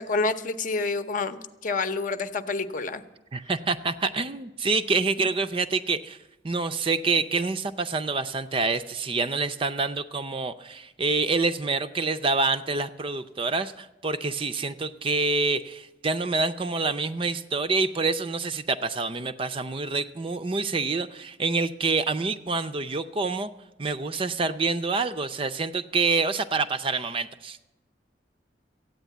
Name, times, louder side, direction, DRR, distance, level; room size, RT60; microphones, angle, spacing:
voice 1, 0.0-3.0, left 3 dB, 45° left, 10 dB, 0.8 m, -28 dB
voice 2, 3.3-6.2 6.4-23.5 23.8-27.7, right 3 dB, 30° right, 11 dB, 0.5 m, -27 dB
14.5 x 9.1 x 9.2 m, 1.0 s
head